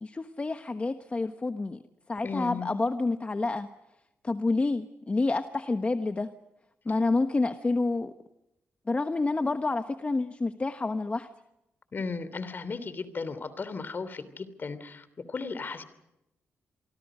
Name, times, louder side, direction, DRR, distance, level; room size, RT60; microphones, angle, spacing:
voice 1, 0.0-1.8 2.1-3.7 4.2-6.3 6.8-8.1 8.9-11.3, left 3 dB, 30° left, 8 dB, 1.2 m, -28 dB
voice 2, 2.2-2.7 11.9-15.8, left 4 dB, 45° left, 14 dB, 3.1 m, -35 dB
27.5 x 24.0 x 5.1 m, 0.89 s
cardioid pair, 80°, 5 cm